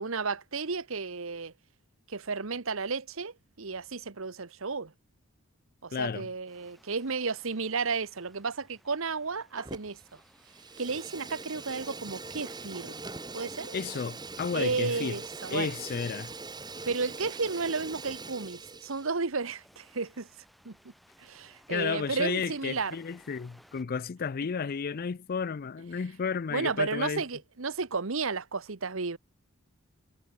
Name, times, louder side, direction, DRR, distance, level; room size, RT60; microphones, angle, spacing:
voice 1, 0.0-1.5 2.1-4.9 5.8-10.2 10.8-13.0 13.3-13.7 14.5-15.7 16.8-20.3 20.6-20.8 21.2-23.0 26.5-29.2, right 4 dB, 65° right, 1.1 m, -33 dB
voice 2, 5.9-6.3 13.7-15.2 15.5-16.3 21.7-27.2, left 6 dB, 45° left, 0.4 m, -32 dB
sound 1, 6.5-23.8, equal, ahead, 4.2 m, -63 dB
Fire, 9.6-10.1 10.4-19.1, right 3 dB, 20° right, 1.5 m, -42 dB
head